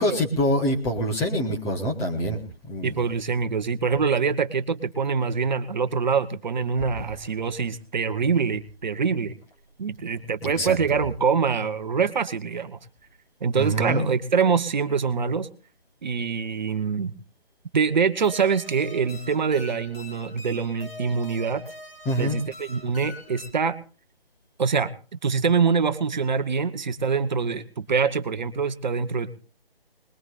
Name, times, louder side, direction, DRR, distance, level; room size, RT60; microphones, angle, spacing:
voice 1, 0.0-2.4 2.7-3.0 7.0-7.1 10.4-10.8 13.5-14.1 22.0-22.4, equal, 10° left, 1 dB, 1.3 m, -25 dB
voice 2, 2.8-9.3 9.8-12.8 13.4-15.5 16.0-17.1 17.7-21.6 22.2-23.8 24.6-24.9 25.2-29.4, right 5 dB, 50° right, 9 dB, 1.0 m, -24 dB
sound 1, 18.2-23.5, left 2 dB, 70° left, 5.3 m, -43 dB
22.0 x 21.0 x 2.5 m, 0.36 s
figure-of-eight pair, 150°, 29 cm